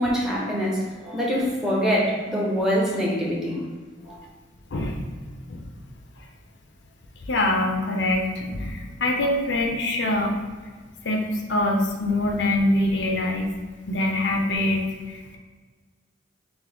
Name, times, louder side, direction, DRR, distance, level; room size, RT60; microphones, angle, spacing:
voice 1, 0.0-3.6 4.1-4.2, equal, ahead, -5 dB, 0.8 m, -24 dB
voice 2, 7.3-10.3 11.0-13.5 13.9-14.8 15.1-15.4, left 1 dB, 65° left, 2 dB, 0.5 m, -24 dB
5.8 x 2.0 x 3.4 m, 1.4 s
head